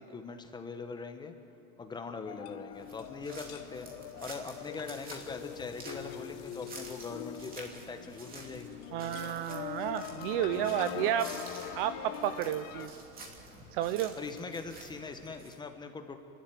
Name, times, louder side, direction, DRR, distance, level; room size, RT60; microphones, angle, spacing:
voice 1, 0.0-1.3 1.8-3.9 4.2-8.8 13.5-13.6 14.2-16.2, left 4 dB, 10° left, 7 dB, 1.1 m, -42 dB
sound 1, 2.2-12.9, left 11 dB, 35° left, 1.0 m, -43 dB
sound 2, 2.7-15.6, right 2 dB, 20° right, 2.9 m, -50 dB
voice 2, 8.9-11.3 11.7-13.0 13.7-14.1, right 11 dB, 40° right, 12 dB, 0.6 m, -31 dB
29.0 x 12.5 x 9.3 m, 2.8 s
supercardioid pair, 150°, 44 cm